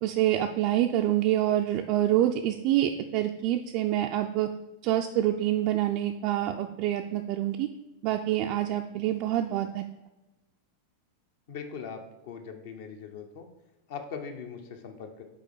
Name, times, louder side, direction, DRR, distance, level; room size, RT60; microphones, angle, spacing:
voice 1, 0.0-4.5 4.8-7.7 8.0-9.9, right 12 dB, 45° right, 4 dB, 0.3 m, -26 dB
voice 2, 11.5-13.5 13.9-15.2, left 6 dB, 50° left, 5 dB, 0.8 m, -40 dB
5.2 x 4.2 x 4.8 m, 0.99 s
figure-of-eight pair, 90°, 0 cm